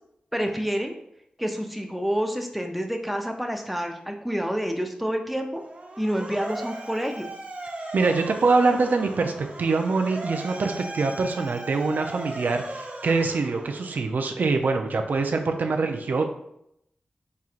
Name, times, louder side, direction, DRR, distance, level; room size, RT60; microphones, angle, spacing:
voice 1, 0.3-0.9 1.4-5.6 6.0-7.3, equal, ahead, 4 dB, 0.6 m, -28 dB
Motor vehicle (road) / Siren, 5.6-14.2, right 2 dB, 50° right, 0.7 m, -38 dB
voice 2, 7.9-9.3 9.6-16.2, right 3 dB, 75° right, 4 dB, 0.4 m, -24 dB
4.3 x 3.6 x 2.5 m, 0.77 s
cardioid pair, 55°, 3 cm